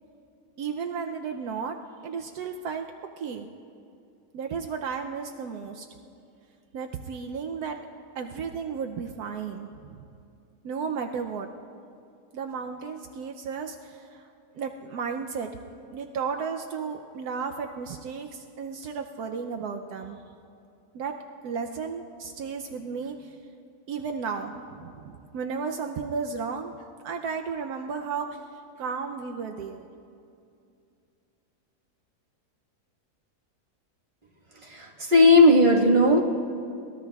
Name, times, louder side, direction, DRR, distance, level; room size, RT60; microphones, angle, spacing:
voice 1, 0.6-1.8 2.0-2.9 3.2-3.5 4.3-5.9 6.7-7.8 8.1-10.1 10.6-11.5 12.3-14.3 14.5-15.5 15.9-20.2 20.9-21.1 21.4-23.4 23.9-26.8 27.0-28.4 28.8-29.9, right 5 dB, 80° right, 4 dB, 1.1 m, -33 dB
voice 2, 34.6-36.2, left 2 dB, 35° right, -3 dB, 1.6 m, -17 dB
23.5 x 19.5 x 2.3 m, 2.5 s
omnidirectional pair, 1.6 m